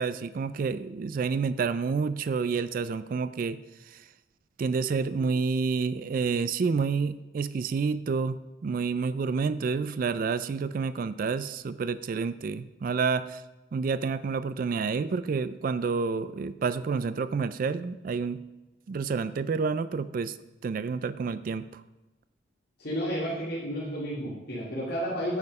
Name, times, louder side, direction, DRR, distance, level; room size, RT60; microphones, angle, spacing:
voice 1, 0.0-3.6 3.9-4.0 4.6-13.4 13.7-18.4 18.9-20.4 20.6-21.8, right 5 dB, 45° right, 15 dB, 0.3 m, -29 dB
voice 2, 22.8-25.4, equal, 55° left, -8 dB, 2.5 m, -31 dB
9.5 x 7.4 x 5.3 m, 1.1 s
head